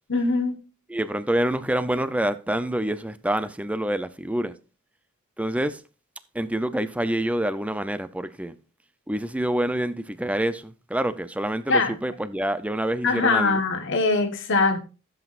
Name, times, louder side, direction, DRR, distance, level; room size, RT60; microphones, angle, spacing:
voice 1, 0.1-0.6 11.7-11.9 13.0-14.8, left 3 dB, 60° left, 1.2 m, -22 dB
voice 2, 0.9-4.5 5.4-5.8 6.3-8.6 9.1-13.6, right 1 dB, 5° right, 0.5 m, -27 dB
15.0 x 7.9 x 2.5 m
head